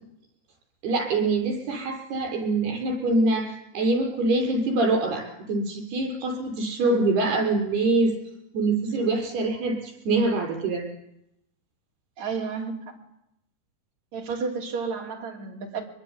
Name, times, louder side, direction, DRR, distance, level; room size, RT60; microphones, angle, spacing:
voice 1, 0.8-8.1 8.5-10.9, right 2 dB, 85° right, 1 dB, 8.0 m, -24 dB
voice 2, 12.2-13.0 14.1-15.8, right 5 dB, 50° right, 1 dB, 4.3 m, -31 dB
23.0 x 22.0 x 9.9 m, 0.83 s
omnidirectional pair, 4.4 m